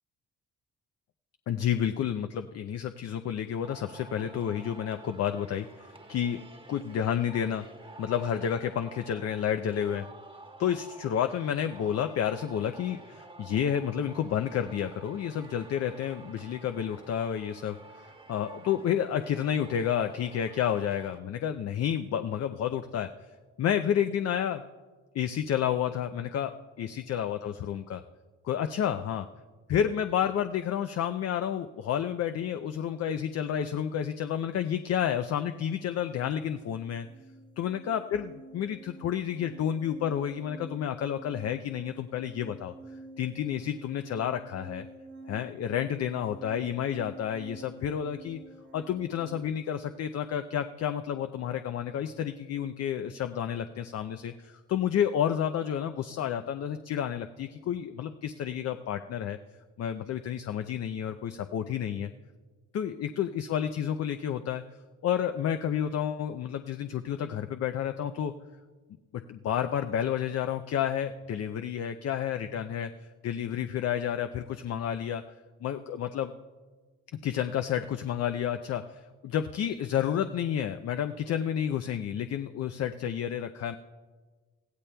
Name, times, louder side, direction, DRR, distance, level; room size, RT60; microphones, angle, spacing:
voice 1, 1.5-6.4 6.7-7.7 8.0-10.1 10.6-18.0 18.3-23.1 23.6-24.6 25.1-28.0 28.4-29.3 29.7-37.1 37.6-42.7 43.2-44.9 45.3-48.4 48.7-59.4 59.8-62.1 62.7-64.6 65.0-68.3 69.3-72.9 73.2-75.2 75.6-76.3 77.2-83.8, left 9 dB, 55° left, 8 dB, 0.5 m, -30 dB
Singing, 3.6-21.2, right 2 dB, 20° right, 1.2 m, -50 dB
sound 1, 34.6-34.8 35.1-49.4, right 2 dB, 75° right, 1.8 m, -49 dB
21.0 x 15.0 x 2.3 m, 1.4 s
cardioid pair, 90°, 30 cm